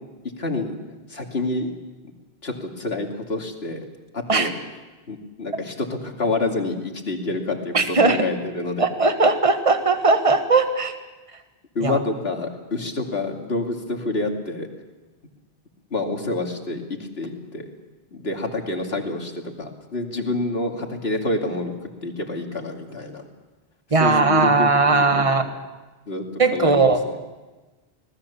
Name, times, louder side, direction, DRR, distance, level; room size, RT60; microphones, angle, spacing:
voice 1, 0.4-0.8 1.1-1.7 2.4-3.8 4.1-4.5 5.1-8.9 11.7-14.7 15.9-16.8 17.2-17.7 18.1-19.3 19.6-21.7 22.0-23.2 24.0-25.1 26.1-26.2 26.5-26.7, left 2 dB, 75° left, 3 dB, 2.7 m, -27 dB
voice 2, 7.7-8.3 8.8-10.9 11.8-12.0 23.9-25.4 26.4-27.0, right 3 dB, 35° right, 7 dB, 1.6 m, -18 dB
26.0 x 19.0 x 7.1 m, 1.2 s
omnidirectional pair, 1.0 m